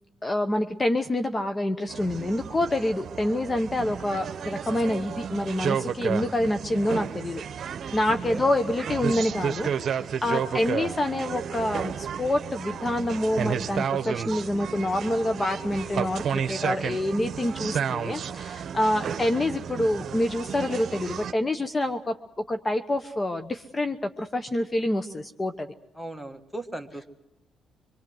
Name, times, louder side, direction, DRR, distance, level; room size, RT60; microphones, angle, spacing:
voice 1, 0.2-7.4 7.9-22.1 22.5-25.7, left 1 dB, 25° left, 8 dB, 1.1 m, -27 dB
sound 1, 1.9-21.3, right 7 dB, 55° right, 1.0 m, -32 dB
voice 2, 8.1-8.5 10.5-10.7 19.0-19.2 26.0-27.1, right 2 dB, ahead, 3 dB, 2.1 m, -38 dB
25.0 x 23.5 x 7.9 m, 0.87 s
cardioid pair, 90°, 0 cm